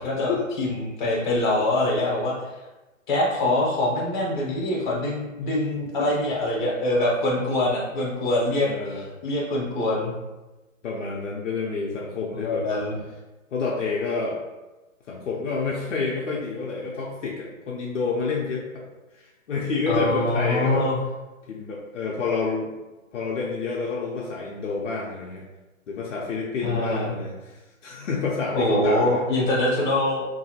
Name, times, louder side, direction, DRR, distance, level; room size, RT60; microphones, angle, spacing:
voice 1, 0.0-2.3 3.1-10.1 12.4-13.0 19.9-21.0 26.6-27.1 28.5-30.3, left 1 dB, 35° left, -3 dB, 0.8 m, -24 dB
voice 2, 8.7-9.1 10.8-12.7 13.5-14.4 15.1-18.8 19.1-20.9 21.5-22.7 23.1-25.4 25.9-29.2, left 4 dB, 65° left, -3 dB, 0.6 m, -29 dB
2.7 x 2.7 x 2.7 m, 1.1 s
hypercardioid pair, 165°, 41 cm